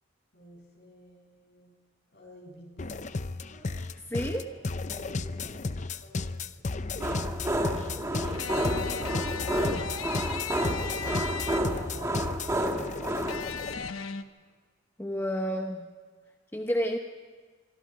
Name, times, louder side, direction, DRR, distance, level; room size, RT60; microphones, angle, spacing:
voice 1, 0.3-1.7 2.1-3.8 4.1-4.6 4.8-7.4 7.9-10.8 11.5-12.5 12.9-14.2, equal, 55° left, -1 dB, 7.7 m, -49 dB
sound 1, 2.8-13.9, left 3 dB, 35° left, 0.6 m, -34 dB
voice 2, 4.1-4.5 15.0-15.9 16.5-17.0, equal, 10° left, 3 dB, 0.9 m, -30 dB
sound 2, 7.0-13.5, right 1 dB, 15° right, 1.6 m, -31 dB
sound 3, 8.3-12.0 13.3-14.2, left 6 dB, 85° left, 1.0 m, -37 dB
26.0 x 23.5 x 4.8 m, 1.4 s
head